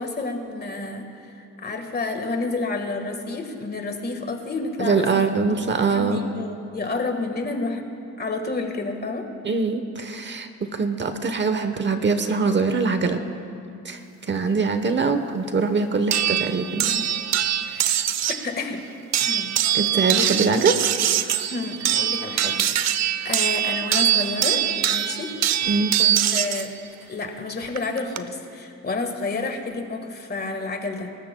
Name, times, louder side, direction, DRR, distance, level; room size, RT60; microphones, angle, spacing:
voice 1, 0.0-7.9 8.2-9.3 17.6-18.0 18.4-18.8 19.2-19.5 20.1-20.3 21.5-26.7 27.1-31.1, left 3 dB, 35° left, 5 dB, 1.6 m, -30 dB
voice 2, 4.8-6.3 9.4-13.2 13.8-14.0 14.3-17.0 19.2-19.3 19.7-20.7 21.2-21.5 25.7-25.9, right 4 dB, 40° right, 8 dB, 1.0 m, -23 dB
sound 1, 16.1-18.5 19.1-26.7 27.8-28.2, right 11 dB, 60° right, 0.7 m, -23 dB
26.0 x 13.5 x 2.3 m, 2.7 s
cardioid pair, 90°, 30 cm